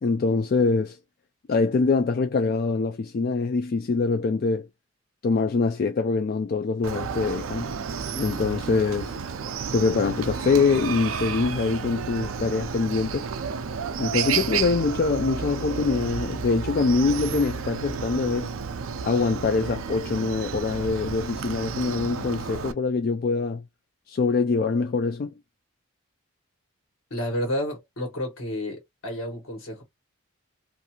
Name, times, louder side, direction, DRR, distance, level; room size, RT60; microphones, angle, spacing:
voice 1, 0.0-1.0 1.5-4.7 5.2-7.7 8.1-9.1 9.7-13.3 14.0-18.5 19.0-23.6 24.1-25.3, left 4 dB, 45° left, 0.3 m, -24 dB
Chicken rooster, 6.8-22.7, right 6 dB, 75° right, 0.4 m, -31 dB
voice 2, 27.1-29.8, left 1 dB, 80° left, 1.3 m, -30 dB
2.6 x 2.4 x 2.8 m
head